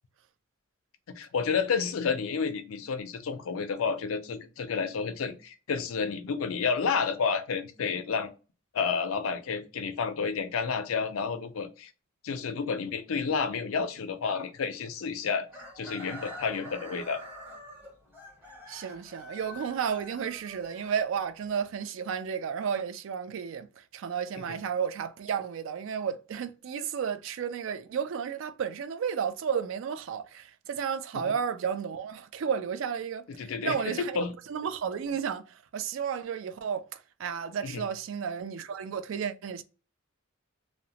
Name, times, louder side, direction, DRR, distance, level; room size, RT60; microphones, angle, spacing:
voice 1, 1.1-8.3 8.7-11.9 12.2-15.5 15.8-17.2 24.4-24.5 31.1-31.3 33.4-34.3 37.6-37.8, left 5 dB, 85° left, 0.4 m, -30 dB
Chicken rooster, 15.5-21.4, equal, 10° right, 0.8 m, -46 dB
voice 2, 18.7-39.6, right 7 dB, 65° right, 0.3 m, -33 dB
2.7 x 2.0 x 2.8 m
head